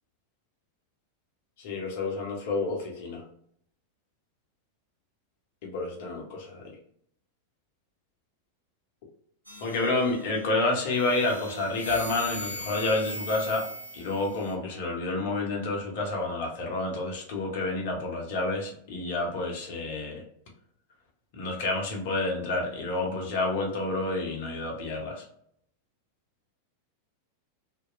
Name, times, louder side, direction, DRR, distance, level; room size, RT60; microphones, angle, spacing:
voice 1, 1.6-3.2 5.6-6.6 9.6-13.7 13.9-20.2 21.3-25.2, left 2 dB, 50° left, 0 dB, 0.9 m, -29 dB
sound 1, 9.5-10.4 10.9-14.5, equal, 90° left, 0.6 m, -39 dB
2.9 x 2.2 x 2.3 m, 0.67 s
figure-of-eight pair, 90°, 0 cm